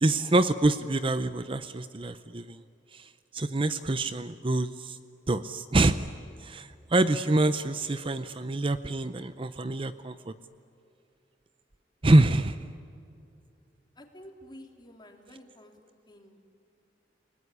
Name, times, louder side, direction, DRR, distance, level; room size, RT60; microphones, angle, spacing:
voice 1, 0.0-2.6 2.9-5.0 5.3-6.1 6.4-10.3 12.0-12.7, right 2 dB, 30° right, 12 dB, 0.6 m, -26 dB
voice 2, 13.9-15.8 16.1-16.5, equal, 25° left, 3 dB, 3.2 m, -50 dB
29.5 x 19.5 x 9.9 m, 2.7 s
head